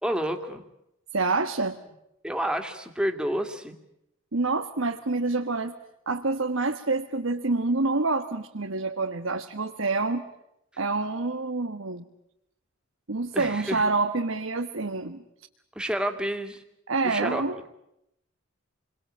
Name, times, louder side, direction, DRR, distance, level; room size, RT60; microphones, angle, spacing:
voice 1, 0.0-0.6 2.2-3.8 13.3-13.8 15.8-16.6 17.0-17.4, equal, 5° right, 5 dB, 2.4 m, -29 dB
voice 2, 1.1-1.8 4.3-5.7 6.1-10.3 10.8-12.0 13.1-15.2 16.9-17.7, right 3 dB, 90° right, 5 dB, 1.6 m, -27 dB
29.5 x 22.0 x 8.8 m, 0.82 s
head